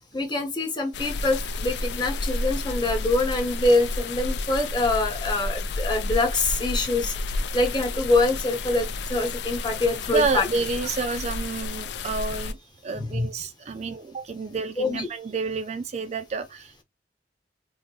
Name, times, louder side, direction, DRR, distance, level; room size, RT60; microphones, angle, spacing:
voice 1, 0.1-7.1 7.5-10.5 12.9-13.3 13.7-13.8 14.8-15.1, left 2 dB, 25° left, 1.0 m, -25 dB
sound 1, 0.9-12.5, left 2 dB, 70° left, 0.5 m, -31 dB
voice 2, 10.1-12.6 12.8-16.8, right 3 dB, 40° right, 0.3 m, -29 dB
3.8 x 2.6 x 2.8 m
head